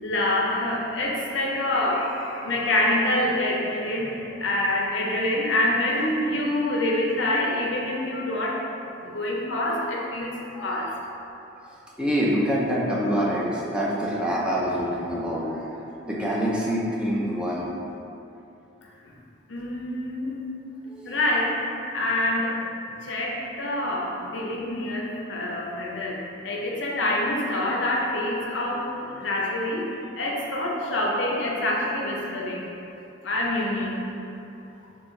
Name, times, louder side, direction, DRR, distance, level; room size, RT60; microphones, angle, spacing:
voice 1, 0.0-8.6 9.0-10.9 19.5-20.4 21.0-22.6 23.0-32.7 33.2-34.0, left 1 dB, 65° left, -2 dB, 0.6 m, -26 dB
voice 2, 12.0-15.7 16.1-17.7 20.9-21.2, equal, 5° right, -6 dB, 0.4 m, -26 dB
6.0 x 2.3 x 3.1 m, 2.8 s
head